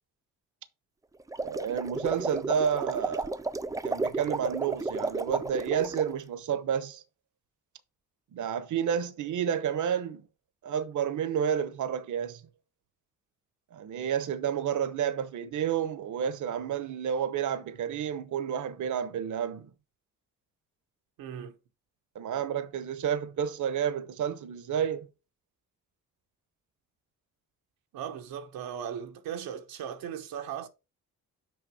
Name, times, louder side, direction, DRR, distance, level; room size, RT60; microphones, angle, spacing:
sound 1, 1.2-6.1, right 3 dB, 10° right, 0.5 m, -33 dB
voice 1, 1.4-3.4 3.8-7.0 8.3-10.2 10.6-12.4 13.7-19.7 22.1-25.1, right 8 dB, 55° right, 0.8 m, -30 dB
voice 2, 21.2-21.6 27.9-30.7, right 8 dB, 85° right, 1.0 m, -37 dB
6.4 x 5.0 x 4.7 m
cardioid pair, 70°, 35 cm